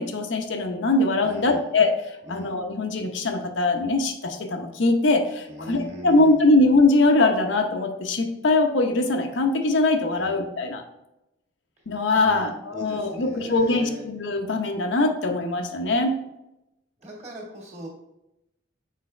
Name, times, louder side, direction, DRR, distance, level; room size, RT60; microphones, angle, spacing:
voice 1, 0.0-1.9 2.3-10.8 11.9-16.1, left 2 dB, 80° left, 4 dB, 0.8 m, -22 dB
voice 2, 1.2-1.7 2.2-2.5 5.5-6.4 10.1-10.4 12.1-14.0 17.0-17.9, equal, 35° right, -2 dB, 1.9 m, -39 dB
6.6 x 4.8 x 3.2 m, 0.89 s
head